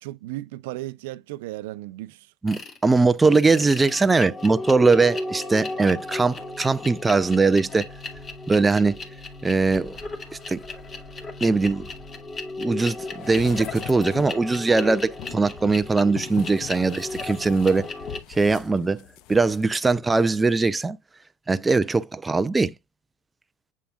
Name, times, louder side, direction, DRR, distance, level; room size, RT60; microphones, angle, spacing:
voice 1, 0.0-2.3 2.9-3.4, right 17 dB, 70° right, 0.6 m, -36 dB
voice 2, 2.4-7.9 8.5-9.0 9.4-10.0 10.5-10.6 11.4-11.9 12.6-17.9 18.3-19.0 19.3-21.0 21.5-22.7, right 3 dB, 15° right, 0.5 m, -21 dB
sound 1, 2.5-2.8 3.3-18.2, left 2 dB, 30° left, 2.3 m, -35 dB
sound 2, 13.2-14.5 15.1-19.6 19.9-20.0, left 14 dB, 60° left, 0.6 m, -41 dB
7.5 x 6.8 x 2.4 m
hypercardioid pair, 85°, 0 cm